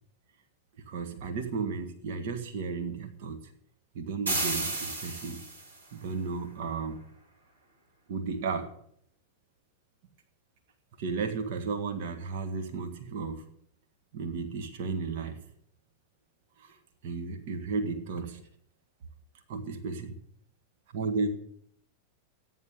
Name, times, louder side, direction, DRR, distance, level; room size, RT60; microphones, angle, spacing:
voice 1, 0.8-3.5 3.9-5.4 5.9-7.0 8.1-8.7 11.0-13.5 14.1-15.4 16.6-16.8 17.0-18.4 19.5-20.2 20.9-21.3, right 4 dB, 50° right, 7 dB, 1.8 m, -34 dB
sound 1, 4.3-5.8, right 2 dB, 80° right, 2.3 m, -32 dB
13.5 x 10.0 x 6.7 m, 0.70 s
figure-of-eight pair, 90°, 0 cm